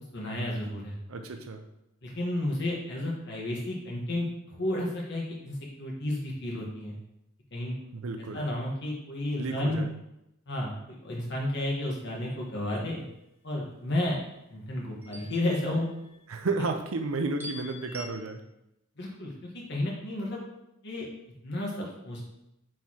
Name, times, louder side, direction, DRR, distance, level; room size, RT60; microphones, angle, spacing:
voice 1, 0.1-0.9 2.0-6.9 7.5-7.7 8.2-9.8 10.5-13.0 13.4-14.2 14.5-15.9 19.0-20.4 20.8-21.1 21.4-22.2, left 1 dB, 55° left, -2 dB, 1.4 m, -32 dB
voice 2, 1.1-1.6 7.9-8.5 9.4-9.9 16.3-18.4, right 3 dB, 85° right, 5 dB, 0.6 m, -32 dB
sound 1, 12.3-12.9 15.0-16.4 17.4-18.1, equal, 10° right, 0.8 m, -46 dB
9.0 x 4.7 x 2.9 m, 0.85 s
head